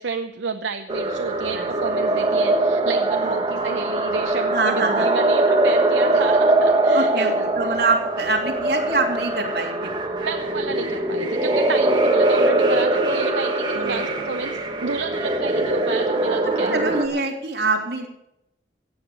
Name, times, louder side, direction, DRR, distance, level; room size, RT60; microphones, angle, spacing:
voice 1, 0.0-7.4 7.7-7.8 10.2-17.2, right 4 dB, 80° right, 7 dB, 0.8 m, -30 dB
sound 1, 0.9-17.1, right 2 dB, 25° right, 1.5 m, -22 dB
voice 2, 4.5-5.1 6.9-10.0 12.4-13.1 13.7-14.1 15.5-15.7 16.4-18.1, right 3 dB, 60° right, 0 dB, 3.0 m, -25 dB
16.0 x 8.8 x 6.6 m, 0.84 s
head